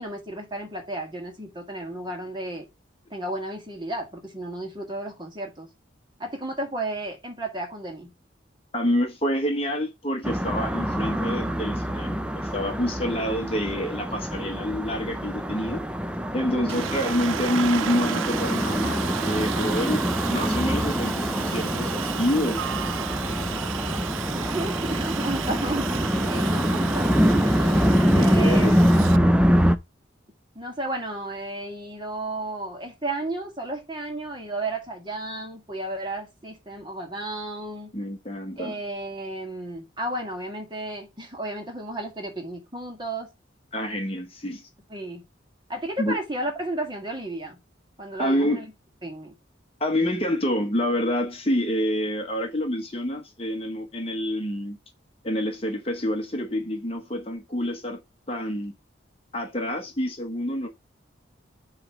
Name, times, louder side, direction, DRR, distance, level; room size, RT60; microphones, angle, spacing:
voice 1, 0.0-2.7 3.1-5.7 6.2-8.1 16.5-16.8 24.3-26.0 26.3-27.2 27.5-27.8 28.2-29.0 30.6-37.9 38.6-43.3 44.9-45.2 45.7-47.6 48.0-48.7 49.0-49.3, right 2 dB, 25° right, 1.9 m, -33 dB
voice 2, 8.7-15.8 16.3-20.0 20.3-22.6 28.1-28.8 37.9-38.8 43.7-44.7 46.0-46.1 48.2-48.6 49.8-54.8 55.2-58.0 58.3-58.7 59.3-60.7, equal, 30° left, 1.0 m, -27 dB
sound 1, 10.2-29.7, equal, 5° right, 0.5 m, -24 dB
Aircraft, 16.7-29.2, right 9 dB, 85° right, 0.4 m, -34 dB
7.8 x 3.2 x 6.1 m
head